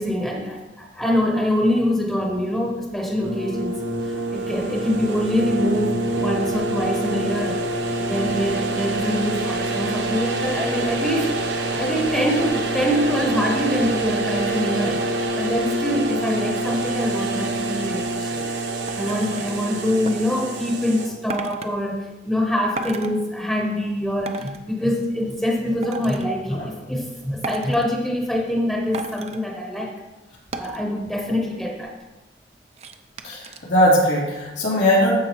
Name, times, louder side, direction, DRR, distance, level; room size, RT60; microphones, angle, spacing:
voice 1, 0.0-7.6 8.0-15.0 15.4-18.5 18.9-30.0 30.6-31.9, equal, 5° left, 0 dB, 0.9 m, -24 dB
sound 1, 3.2-21.1, right 2 dB, 85° right, 1.1 m, -26 dB
sound 2, 18.9-19.5 20.1-20.2 21.3-21.7 22.8-23.1 24.3-24.6 25.8-26.3 27.4-27.9 28.9-29.4 30.5-30.9 31.3-31.4 31.6-32.0 32.8-33.6 34.0-34.1, right 3 dB, 35° right, 0.5 m, -33 dB
voice 2, 33.2-35.1, equal, 90° left, -5 dB, 2.8 m, -19 dB
14.0 x 4.9 x 3.1 m, 1.1 s
head